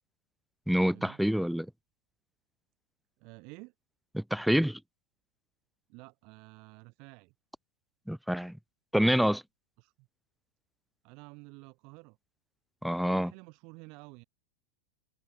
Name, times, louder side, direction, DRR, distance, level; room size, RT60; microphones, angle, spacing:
voice 1, 0.7-1.7 4.1-4.8 8.1-8.6 8.9-9.4 12.8-13.3, equal, ahead, 0.3 m, -27 dB
voice 2, 3.2-3.7 5.9-7.3 9.8-10.1 11.0-12.2 13.1-14.2, right 29 dB, 45° right, 2.9 m, -51 dB
open air
figure-of-eight pair, 90°, 0 cm